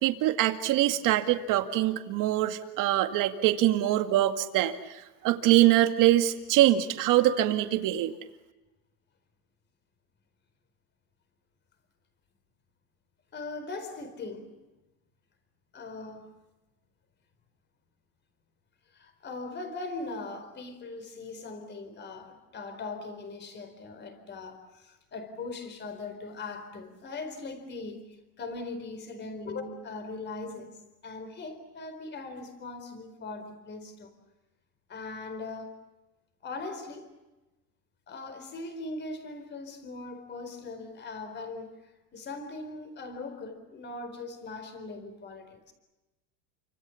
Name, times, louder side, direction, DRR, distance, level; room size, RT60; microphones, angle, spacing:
voice 1, 0.0-4.8 5.2-8.1, right 14 dB, 40° right, 2.2 m, -23 dB
voice 2, 13.3-14.5 15.7-16.3 18.9-28.1 28.4-30.8 31.0-34.1 34.9-35.8 36.4-37.1 38.1-45.7, left 3 dB, 20° left, 4.3 m, -40 dB
29.0 x 26.0 x 7.2 m
supercardioid pair, 160°, 50 cm